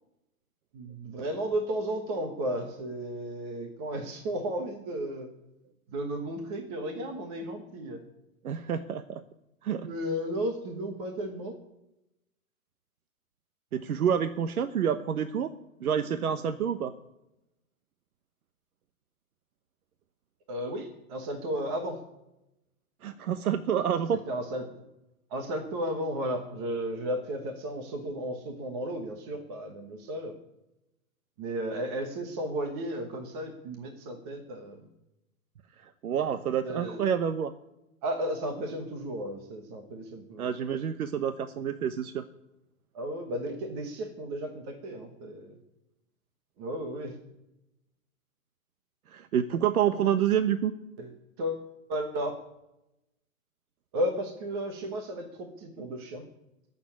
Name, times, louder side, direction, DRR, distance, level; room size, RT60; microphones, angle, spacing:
voice 1, 0.7-5.3 5.9-8.0 9.8-11.5 20.5-22.0 24.3-24.6 25.3-30.3 31.4-34.8 36.6-37.0 38.0-40.5 42.9-45.6 46.6-47.2 51.0-52.3 53.9-56.2, equal, 20° right, 4 dB, 1.1 m, -34 dB
voice 2, 8.4-9.2 9.6-9.9 13.7-15.5 15.8-16.9 23.0-24.2 35.8-37.5 40.4-42.2 49.1-50.7, right 8 dB, 90° right, 10 dB, 1.2 m, -28 dB
15.0 x 7.1 x 9.8 m, 0.91 s
hypercardioid pair, 175°, 42 cm